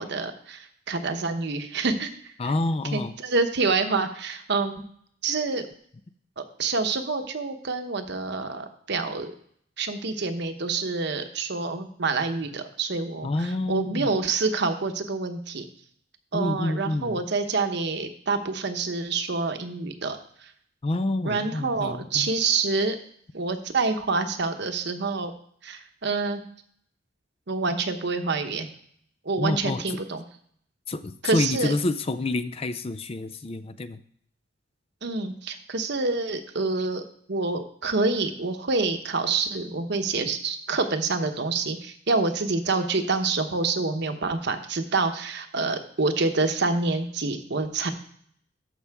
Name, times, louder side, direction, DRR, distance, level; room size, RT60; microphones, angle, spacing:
voice 1, 0.0-2.1 2.4-2.5 2.9-4.8 5.2-5.6 6.4-9.3 9.8-15.6 16.3-20.2 21.2-23.0 23.3-25.3 25.6-26.4 27.5-28.7 29.2-30.2 31.2-31.7 35.0-37.0 37.3-47.9, right 3 dB, 60° right, 7 dB, 0.9 m, -27 dB
voice 2, 2.4-3.1 13.2-14.1 16.3-17.2 20.8-22.3 29.4-30.0 30.9-34.0, left 2 dB, 30° left, 11 dB, 0.4 m, -28 dB
13.5 x 5.5 x 3.5 m, 0.63 s
head